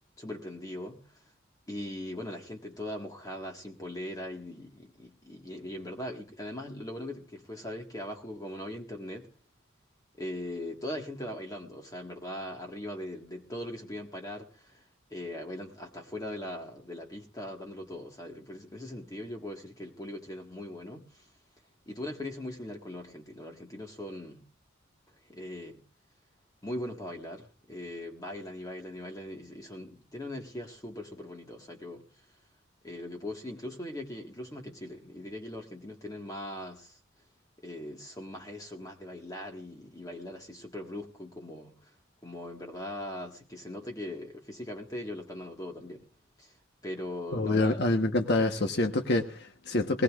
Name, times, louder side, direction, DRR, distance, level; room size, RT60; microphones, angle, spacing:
voice 1, 0.2-1.2 1.7-9.3 10.2-21.3 21.9-24.4 25.3-25.8 26.6-32.1 32.8-37.0 37.6-41.9 42.2-46.1 46.4-46.5 46.8-47.8 48.6-48.7, left 1 dB, 20° left, 1.7 m, -40 dB
voice 2, 47.3-50.0, left 2 dB, 55° left, 1.2 m, -26 dB
20.5 x 19.0 x 2.5 m
head